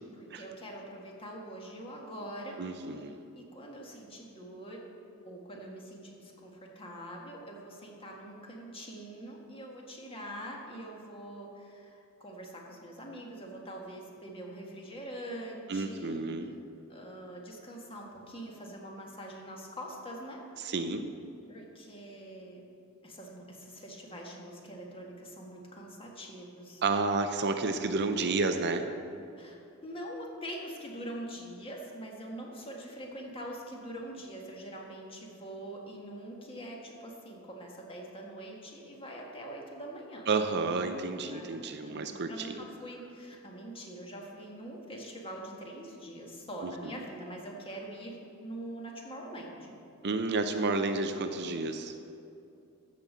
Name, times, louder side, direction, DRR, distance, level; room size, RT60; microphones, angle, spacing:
voice 1, 0.1-2.9 3.3-4.8 5.2-16.2 16.9-20.4 21.5-22.6 23.0-26.8 29.4-29.6 29.8-40.3 41.3-41.5 41.8-49.8, right 1 dB, 25° left, -1 dB, 1.6 m, -44 dB
voice 2, 2.6-3.2 15.7-16.5 20.6-21.1 26.8-28.9 40.3-42.6 46.6-46.7 50.0-51.9, right 3 dB, 50° right, 8 dB, 0.6 m, -31 dB
13.5 x 5.2 x 7.4 m, 2.7 s
head